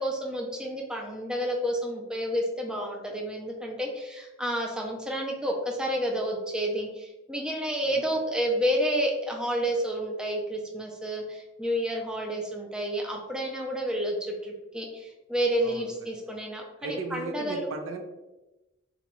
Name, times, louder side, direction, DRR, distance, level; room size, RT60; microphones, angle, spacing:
voice 1, 0.0-17.7, equal, 5° right, -1 dB, 0.4 m, -30 dB
voice 2, 16.8-18.0, right 4 dB, 80° right, 5 dB, 0.4 m, -36 dB
3.8 x 2.2 x 3.0 m, 1.0 s
head